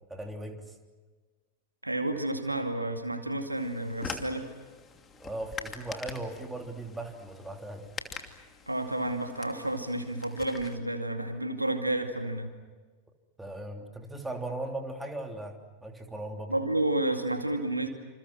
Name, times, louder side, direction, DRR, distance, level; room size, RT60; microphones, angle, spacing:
voice 1, 0.1-0.7 5.2-7.9 13.4-16.5, right 1 dB, 5° right, 3 dB, 3.3 m, -38 dB
voice 2, 1.8-4.5 8.7-12.5 16.5-17.9, right 1 dB, 85° right, 6 dB, 2.3 m, -30 dB
sound 1, 3.6-10.8, left 5 dB, 20° left, 2.7 m, -44 dB
28.0 x 27.5 x 6.2 m, 1.3 s
figure-of-eight pair, 90°, 0 cm